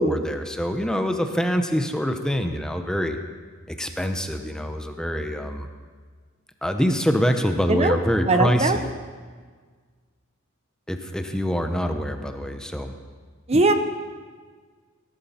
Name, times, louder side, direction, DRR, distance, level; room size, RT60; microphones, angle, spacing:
voice 1, 0.0-3.2 3.7-5.7 6.6-8.9 10.9-12.9 13.5-13.6, equal, 5° left, 6 dB, 0.7 m, -25 dB
voice 2, 8.3-8.8 13.5-13.7, right 2 dB, 30° right, 8 dB, 0.8 m, -20 dB
18.5 x 11.5 x 4.3 m, 1.5 s
head